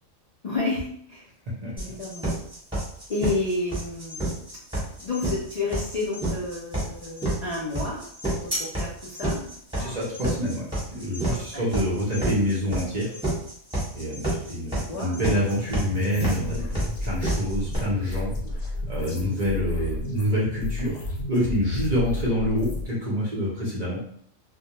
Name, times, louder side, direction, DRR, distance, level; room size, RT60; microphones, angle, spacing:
voice 1, 0.4-1.2 1.8-2.3 3.1-4.3 4.9-8.0 8.3-9.5 9.8-10.0 11.3-11.6 14.9-15.3, left 2 dB, 55° left, -6 dB, 0.4 m, -31 dB
voice 2, 1.6-1.9 9.8-10.6 10.9-13.2 13.9-18.3 18.9-21.0 21.3-24.0, equal, 45° right, -6 dB, 0.6 m, -27 dB
sound 1, 1.8-17.8, right 1 dB, 5° right, 0.9 m, -29 dB
sound 2, 15.5-22.9, left 1 dB, 75° left, 1.0 m, -32 dB
2.2 x 2.2 x 2.8 m, 0.63 s
omnidirectional pair, 1.3 m